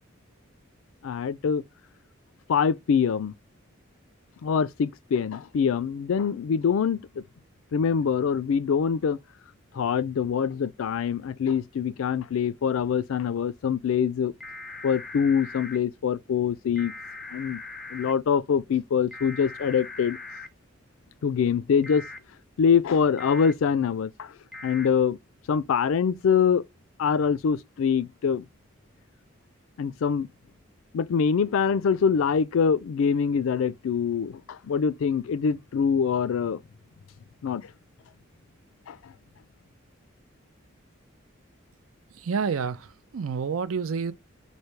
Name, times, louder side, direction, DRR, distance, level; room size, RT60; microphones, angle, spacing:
voice 1, 1.0-1.6 2.5-3.3 4.4-7.3 7.7-9.2 9.7-14.3 14.8-16.9 17.3-17.6 17.9-20.2 21.2-22.1 22.6-24.3 24.6-25.2 25.5-26.6 27.0-28.4 29.8-30.3 30.9-36.6 37.4-37.7 38.9-39.1, left 6 dB, 80° left, 0.4 m, -24 dB
sound 1, 14.4-15.8 16.8-18.1 19.1-20.5 21.8-22.2 23.2-23.5 24.5-24.9, left 3 dB, ahead, 0.4 m, -40 dB
voice 2, 42.1-44.1, right 5 dB, 85° right, 0.5 m, -29 dB
3.2 x 2.7 x 4.5 m
head